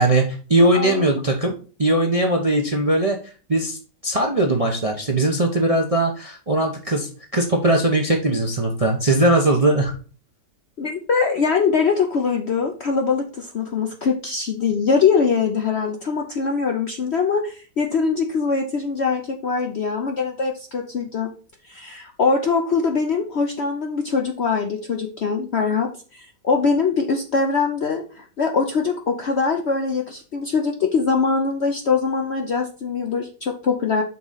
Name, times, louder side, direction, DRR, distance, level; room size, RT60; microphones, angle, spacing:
voice 1, 0.0-1.5 1.8-3.2 3.5-3.8 4.0-9.9, right 1 dB, 35° right, 1 dB, 0.6 m, -19 dB
voice 2, 0.6-1.1 10.8-21.3 21.7-34.0, left 5 dB, 60° left, 2 dB, 0.7 m, -22 dB
5.8 x 3.7 x 5.5 m, 0.38 s
omnidirectional pair, 1.8 m